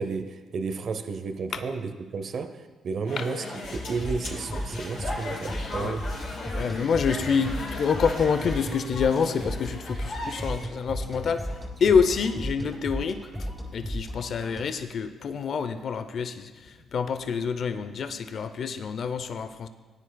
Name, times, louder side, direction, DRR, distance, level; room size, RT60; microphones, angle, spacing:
voice 1, 0.0-3.4 3.7-6.1, right 4 dB, 55° right, 9 dB, 0.7 m, -32 dB
sound 1, 3.1-10.6, left 2 dB, 80° left, 3.6 m, -37 dB
sound 2, 3.6-14.8, equal, 10° right, 2.3 m, -35 dB
voice 2, 6.5-19.7, left 6 dB, 60° left, 9 dB, 0.5 m, -27 dB
18.0 x 9.9 x 2.3 m, 1.4 s
cardioid pair, 90°, 0 cm